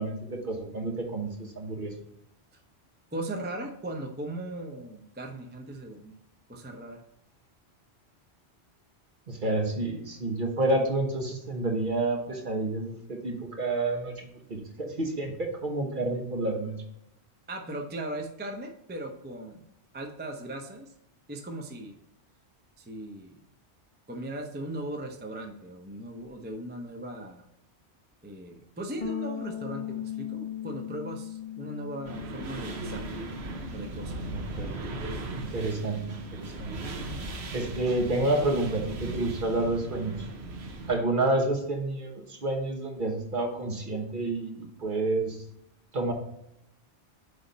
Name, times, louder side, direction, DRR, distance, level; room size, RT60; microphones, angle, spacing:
voice 1, 0.0-1.9 9.3-16.8 34.3-34.8 35.3-36.7 37.5-40.3 40.9-45.4 45.9-46.1, right 2 dB, 50° right, 2 dB, 1.3 m, -29 dB
voice 2, 3.1-6.2 6.5-7.0 17.5-19.6 19.9-20.9 21.3-21.9 22.8-23.4 24.1-27.4 28.2-33.1 33.7-34.4, right 1 dB, 15° right, 3 dB, 0.5 m, -38 dB
Bass guitar, 29.0-35.3, left 9 dB, 45° left, 0.4 m, -39 dB
sound 1, 32.0-41.0, right 2 dB, 70° right, 1.1 m, -37 dB
8.0 x 3.5 x 4.1 m, 0.80 s
omnidirectional pair, 1.1 m